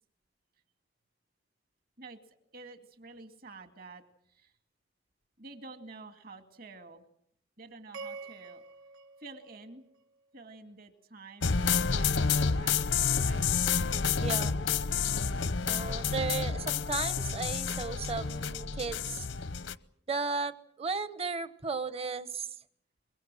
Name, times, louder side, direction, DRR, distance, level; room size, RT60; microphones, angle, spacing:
voice 1, 2.5-4.0 4.3-4.5 5.4-7.0 7.6-8.6 9.2-9.9 10.3-11.6 11.9-13.5, right 3 dB, 55° right, 8 dB, 2.3 m, -49 dB
sound 1, 7.9-10.3, right 4 dB, 85° right, 1.6 m, -47 dB
sound 2, 11.4-19.7, left 5 dB, 85° left, 0.9 m, -29 dB
voice 2, 14.2-14.5 15.7-19.3 20.1-20.5 20.8-22.5, right 4 dB, 35° right, 14 dB, 1.0 m, -35 dB
24.0 x 23.5 x 7.6 m, 0.69 s
head